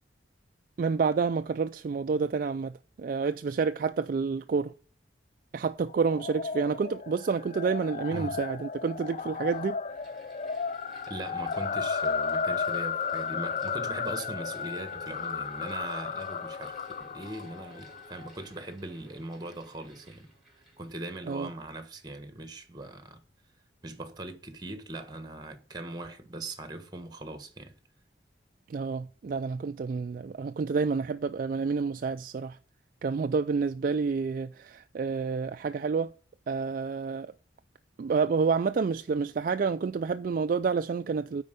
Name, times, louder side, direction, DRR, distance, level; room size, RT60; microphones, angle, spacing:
voice 1, 0.8-4.7 5.5-9.8 21.3-21.5 28.7-32.6 33.0-36.1 36.5-37.3 38.0-41.4, right 5 dB, 45° right, 0.3 m, -29 dB
sound 1, 5.9-18.3, left 5 dB, 40° left, 0.3 m, -34 dB
Mechanical fan, 9.3-21.8, right 1 dB, ahead, 3.3 m, -54 dB
voice 2, 11.1-23.2 23.8-27.7, right 2 dB, 20° right, 1.3 m, -40 dB
9.6 x 4.5 x 6.5 m
head